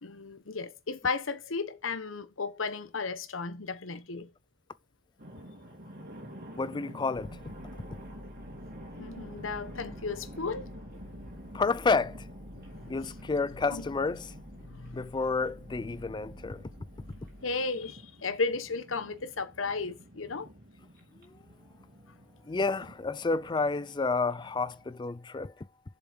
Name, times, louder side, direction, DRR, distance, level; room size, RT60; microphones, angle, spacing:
voice 1, 0.0-4.3 9.0-11.1 12.7-13.0 13.7-13.9 14.6-15.0 17.4-20.5, left 4 dB, 80° left, 1.1 m, -34 dB
sound 1, 5.2-24.9, equal, 55° right, 3.4 m, -49 dB
voice 2, 6.5-7.4 11.5-12.3 12.9-14.3 14.9-16.6 21.2-21.3 22.5-25.5, left 4 dB, 25° left, 0.4 m, -30 dB
sound 2, 7.1-17.4, left 1 dB, 40° left, 2.2 m, -50 dB
7.8 x 7.1 x 5.2 m
head